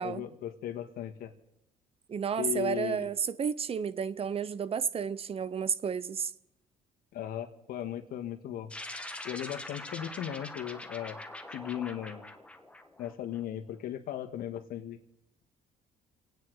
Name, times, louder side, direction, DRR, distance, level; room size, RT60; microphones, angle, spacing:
voice 1, 0.0-1.3 2.4-3.1 7.1-8.7 9.2-11.2 11.5-12.2 13.0-15.0, left 11 dB, 75° left, 1.6 m, -37 dB
voice 2, 2.1-6.3, right 7 dB, 40° right, 0.7 m, -32 dB
sound 1, 8.7-13.4, left 1 dB, 10° left, 1.4 m, -43 dB
27.5 x 9.5 x 4.8 m
cardioid pair, 90°, 15 cm